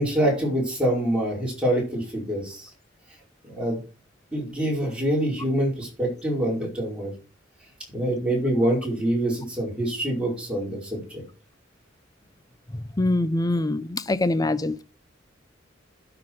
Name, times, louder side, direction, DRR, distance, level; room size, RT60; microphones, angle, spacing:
voice 1, 0.0-2.7 3.5-3.8 4.3-7.1 7.9-11.2, right 1 dB, 5° right, 5.1 m, -25 dB
voice 2, 12.7-14.8, left 2 dB, 20° left, 0.6 m, -24 dB
11.5 x 6.1 x 4.8 m
head